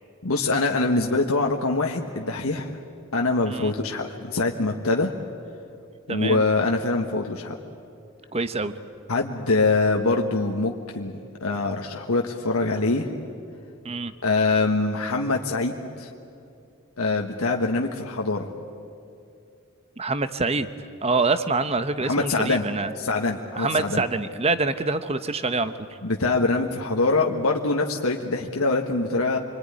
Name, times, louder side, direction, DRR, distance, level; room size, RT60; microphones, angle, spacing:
voice 1, 0.2-2.7 3.1-5.1 6.1-7.5 9.1-13.1 14.2-16.1 17.0-18.5 22.0-22.6 23.0-24.0 26.0-29.4, left 3 dB, 80° left, 1 dB, 1.5 m, -24 dB
voice 2, 6.1-6.4 8.3-8.7 13.8-14.1 20.0-20.7 21.0-22.9 23.6-26.0, right 3 dB, 30° right, 11 dB, 0.9 m, -25 dB
27.5 x 21.5 x 10.0 m, 2.5 s
head